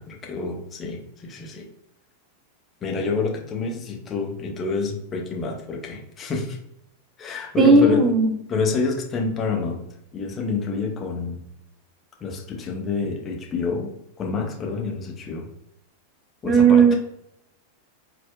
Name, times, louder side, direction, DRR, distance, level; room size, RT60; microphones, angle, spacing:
voice 1, 0.0-1.7 2.8-6.6 7.2-8.0 8.5-9.8 10.1-11.4 12.2-13.9 14.2-15.5 16.4-17.0, left 4 dB, 25° left, 1 dB, 0.6 m, -28 dB
voice 2, 7.6-8.3 16.4-17.0, right 4 dB, 20° right, 2 dB, 0.5 m, -15 dB
4.2 x 2.1 x 2.2 m, 0.76 s
figure-of-eight pair, 90°, 0 cm